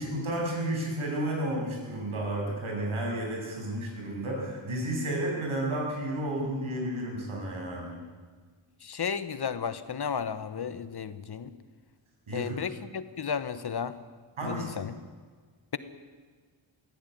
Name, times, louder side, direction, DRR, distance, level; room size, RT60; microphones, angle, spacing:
voice 1, 0.0-7.9 12.3-12.6 14.4-14.7, right 1 dB, 85° right, -1 dB, 7.8 m, -32 dB
voice 2, 8.8-11.5 12.3-13.9 14.4-14.9, left 6 dB, 50° left, 13 dB, 1.2 m, -33 dB
23.0 x 16.0 x 9.4 m, 1.5 s
wide cardioid pair, 135°, 48 cm